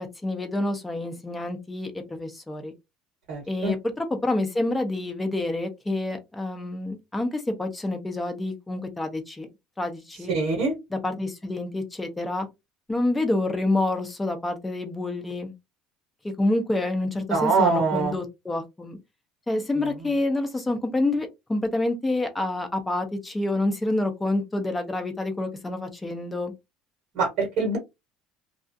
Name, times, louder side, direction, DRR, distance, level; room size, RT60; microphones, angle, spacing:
voice 1, 0.0-2.7 3.5-9.5 9.8-10.3 10.9-12.5 12.9-15.5 16.2-19.0 19.5-26.5, left 2 dB, 10° left, 0.5 m, -28 dB
voice 2, 3.3-3.7 10.3-10.7 17.3-18.1 27.1-27.8, right 4 dB, 45° right, 1.2 m, -23 dB
2.3 x 2.3 x 2.6 m
cardioid pair, 170°, 0 cm